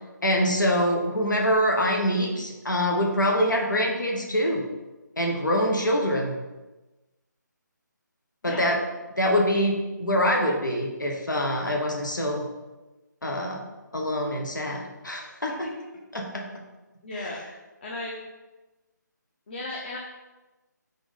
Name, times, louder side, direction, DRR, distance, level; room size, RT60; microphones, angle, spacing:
voice 1, 0.2-4.6 5.2-6.3 8.4-8.8 9.2-12.5 13.2-13.6 13.9-15.7 16.1-16.4 17.2-17.3, equal, 75° left, 1 dB, 1.4 m, -25 dB
voice 2, 17.0-17.4 17.8-18.2 19.5-20.0, left 2 dB, 35° left, -2 dB, 0.9 m, -35 dB
6.0 x 3.9 x 5.5 m, 1.1 s
figure-of-eight pair, 150°, 10 cm